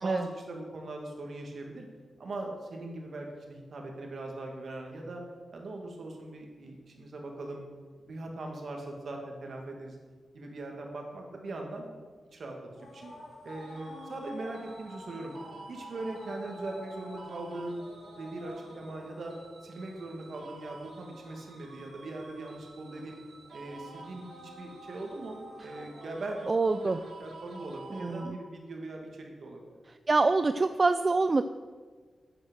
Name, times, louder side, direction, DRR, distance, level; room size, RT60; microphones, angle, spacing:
voice 1, 0.0-1.9 2.2-5.2 5.5-7.6 8.1-10.0 10.3-11.9 12.3-13.1 13.4-15.3 15.7-17.8 18.1-19.4 19.6-23.2 23.5-26.4 26.6-29.6, right 2 dB, 60° right, 1 dB, 2.2 m, -40 dB
sound 1, 12.8-28.2, left 2 dB, 55° left, 2.0 m, -51 dB
sound 2, 13.5-28.7, right 3 dB, 85° right, 2.4 m, -51 dB
voice 2, 26.5-27.0 27.9-28.4 30.1-31.4, right 3 dB, 30° right, 10 dB, 0.3 m, -26 dB
9.0 x 8.9 x 6.4 m, 1.5 s
wide cardioid pair, 130°, 0 cm